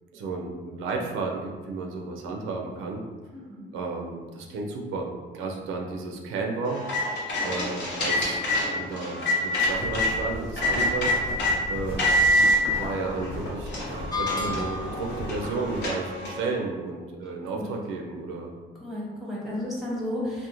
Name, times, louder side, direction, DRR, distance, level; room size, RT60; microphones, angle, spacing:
voice 1, 0.1-3.0 3.7-6.8 7.4-8.4 8.7-11.1 11.7-12.1 12.7-18.5, right 3 dB, 90° right, 1 dB, 0.4 m, -32 dB
voice 2, 3.3-3.7 7.4-7.7 17.5-17.7 18.8-20.5, left 1 dB, ahead, -5 dB, 0.9 m, -33 dB
sound 1, 6.7-10.1 10.6-11.5 12.0-12.6 13.2-13.3 13.7-16.5, left 1 dB, 60° left, 0.8 m, -26 dB
sound 2, 9.7-15.9, left 1 dB, 85° left, 1.0 m, -36 dB
sound 3, 14.1-15.1, left 3 dB, 20° left, 0.4 m, -30 dB
2.4 x 2.0 x 2.9 m, 1.4 s
cardioid pair, 90°, 20 cm